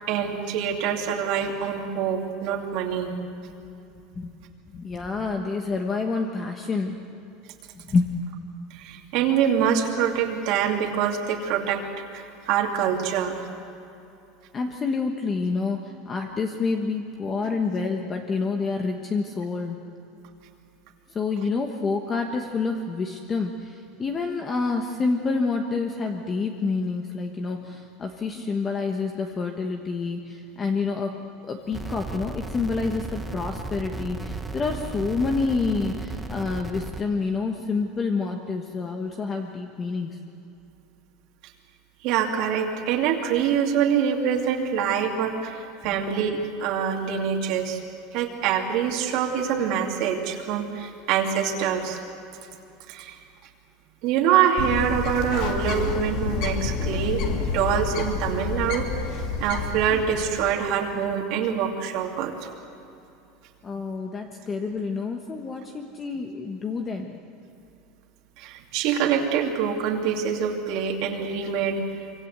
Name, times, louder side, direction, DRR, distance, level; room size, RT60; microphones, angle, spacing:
voice 1, 0.1-3.1 8.7-11.8 12.1-13.4 42.0-47.8 48.1-52.0 52.9-53.1 54.0-58.9 59.4-62.5 68.4-71.8, right 8 dB, 50° right, 0 dB, 2.6 m, -25 dB
voice 2, 4.1-7.0 7.8-8.2 14.5-19.8 21.1-40.2 63.6-67.2, left 4 dB, 20° left, 3 dB, 1.2 m, -28 dB
sound 1, 31.7-37.0, right 3 dB, 5° right, 1.0 m, -35 dB
Bird, 54.6-60.5, left 4 dB, 50° left, 2.7 m, -29 dB
25.5 x 25.0 x 8.1 m, 2.8 s
supercardioid pair, 165°, 0 cm